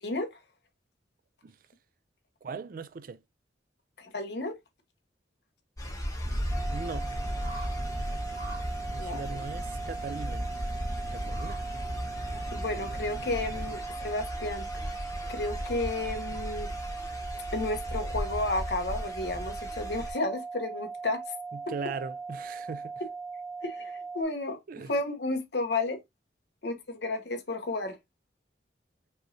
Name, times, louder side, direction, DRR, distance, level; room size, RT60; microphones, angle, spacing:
voice 1, 2.4-3.2 6.7-7.1 8.9-10.5 11.1-11.6 21.5-23.0 24.7-24.9, right 5 dB, 50° right, 0.4 m, -39 dB
voice 2, 4.0-4.6 9.0-9.4 12.5-15.0 15.3-16.7 17.5-21.2 23.6-24.6 24.9-26.0 26.6-28.0, left 2 dB, 65° left, 1.0 m, -32 dB
sound 1, 5.8-20.1, equal, 20° left, 1.0 m, -37 dB
sound 2, 6.2-13.7, equal, 70° right, 2.2 m, -39 dB
sound 3, 6.5-24.2, right 4 dB, 5° right, 0.6 m, -39 dB
5.3 x 3.1 x 2.6 m
head